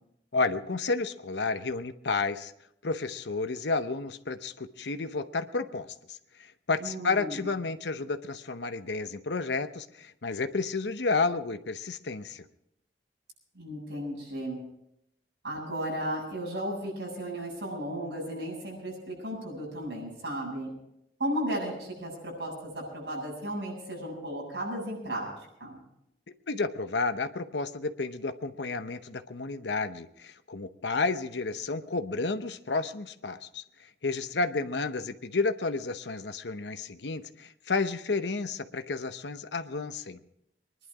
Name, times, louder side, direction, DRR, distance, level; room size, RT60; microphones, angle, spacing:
voice 1, 0.3-2.5 2.8-12.4 26.5-33.6 34.0-40.2, left 3 dB, 80° left, 10 dB, 0.8 m, -31 dB
voice 2, 6.8-7.5 13.5-14.6 15.4-20.7 21.2-25.3 25.6-25.8, right 1 dB, 80° right, -2 dB, 7.9 m, -35 dB
22.5 x 11.0 x 4.9 m, 0.80 s
head